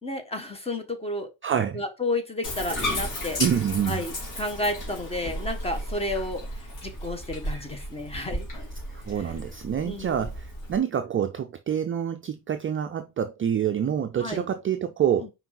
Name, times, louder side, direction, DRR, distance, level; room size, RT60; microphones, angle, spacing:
voice 1, 0.0-1.3 1.7-3.4 3.9-6.4 6.8-8.5 9.2-9.3 9.8-10.3 14.2-14.5 15.2-15.3, left 1 dB, 15° left, 1.2 m, -31 dB
voice 2, 1.4-1.8 3.4-4.0 8.9-15.3, right 9 dB, 30° right, 0.4 m, -27 dB
Bathtub (filling or washing), 2.4-10.8, left 1 dB, 45° left, 2.8 m, -34 dB
5.9 x 4.7 x 3.8 m
cardioid pair, 170°, 43 cm